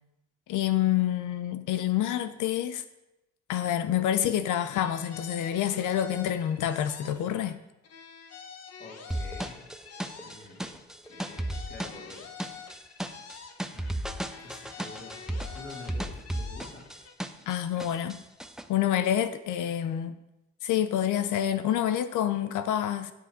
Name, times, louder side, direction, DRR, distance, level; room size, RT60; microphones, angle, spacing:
voice 1, 0.5-2.8 3.5-7.6 17.5-18.2 18.7-20.2 20.6-23.1, left 11 dB, 80° left, 0.7 m, -27 dB
sound 1, 4.6-7.6 7.8-10.8 11.0-14.0 14.2-17.2, left 6 dB, 55° left, 1.2 m, -47 dB
voice 2, 8.8-9.6 10.2-10.7 11.1-12.3 13.7-16.9, left 2 dB, 35° left, 2.9 m, -47 dB
sound 2, 9.1-17.5 17.8-18.6, right 1 dB, ahead, 0.7 m, -35 dB
10.0 x 6.8 x 5.1 m
cardioid pair, 90°, 30 cm